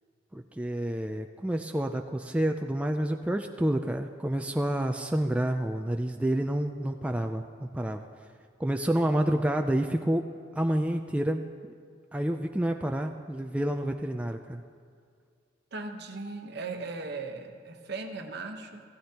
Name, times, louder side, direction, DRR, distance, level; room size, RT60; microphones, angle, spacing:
voice 1, 0.3-8.1 8.6-10.2 10.5-11.4 12.1-14.6, right 1 dB, 5° right, 4 dB, 0.4 m, -29 dB
voice 2, 15.7-18.8, right 3 dB, 60° right, 4 dB, 1.1 m, -38 dB
15.5 x 15.0 x 2.9 m, 2.2 s
head